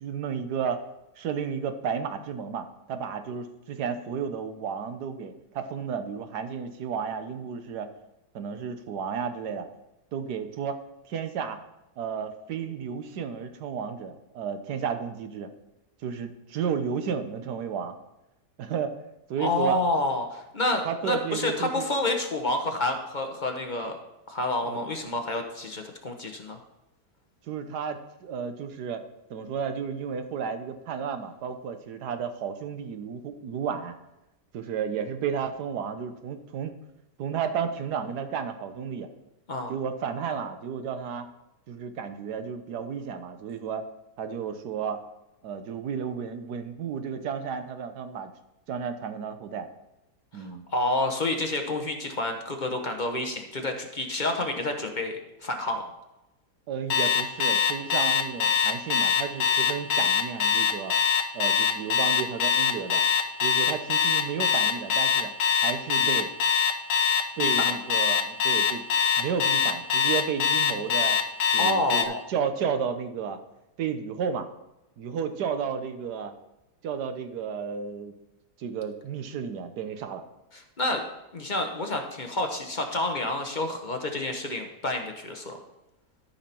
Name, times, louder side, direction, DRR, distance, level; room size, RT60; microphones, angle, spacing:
voice 1, 0.0-0.8 1.2-7.9 8.3-9.7 10.1-10.8 11.1-11.6 12.0-15.5 16.0-17.9 18.6-19.0 19.3-19.8 20.8-21.9 24.6-24.8 27.5-29.0 29.3-33.9 34.5-36.7 37.2-39.1 39.7-41.3 41.7-43.8 44.2-45.0 45.4-48.3 48.7-49.7 50.3-50.6 56.7-60.9 61.3-63.0 63.4-65.3 65.6-66.3 67.4-68.9 69.2-71.2 71.5-73.4 73.8-74.5 75.0-76.3 76.8-78.1 78.6-80.2, right 7 dB, 70° right, 8 dB, 1.4 m, -32 dB
voice 2, 19.4-24.0 24.3-26.6 39.5-39.7 50.3-55.8 67.4-67.6 71.6-72.2 80.5-81.0 81.3-85.6, left 2 dB, 35° left, 3 dB, 0.9 m, -29 dB
Alarm, 56.9-72.1, left 7 dB, 55° left, 1.1 m, -23 dB
13.0 x 5.7 x 4.4 m, 0.93 s
omnidirectional pair, 1.8 m